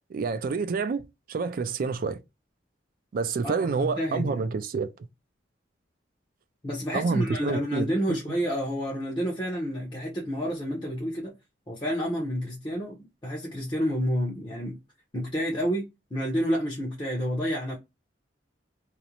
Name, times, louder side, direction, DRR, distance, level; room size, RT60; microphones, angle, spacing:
voice 1, 0.1-1.0 1.3-2.2 3.1-4.9 6.9-8.2, right 4 dB, 50° right, 0.3 m, -28 dB
voice 2, 3.4-4.5 6.6-11.3 11.7-14.8 15.1-17.8, equal, 25° left, 0.6 m, -29 dB
2.5 x 2.0 x 2.8 m
head